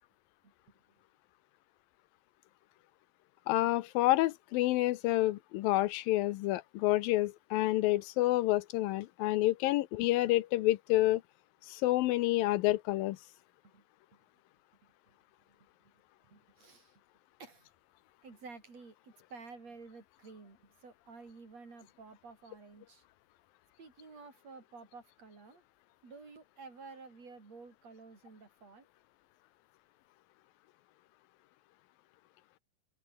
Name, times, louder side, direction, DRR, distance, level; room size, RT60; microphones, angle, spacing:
voice 1, 0.4-0.7 13.6-13.8 14.1-14.2 14.8-14.9 15.5-15.9 16.2-17.0 17.4-17.7 18.2-23.0 23.8-25.6 26.0-28.9, right 4 dB, 45° right, 6.4 m, -52 dB
voice 2, 3.5-11.2 11.7-13.2, left 17 dB, 85° left, 2.5 m, -28 dB
open air
omnidirectional pair, 4.1 m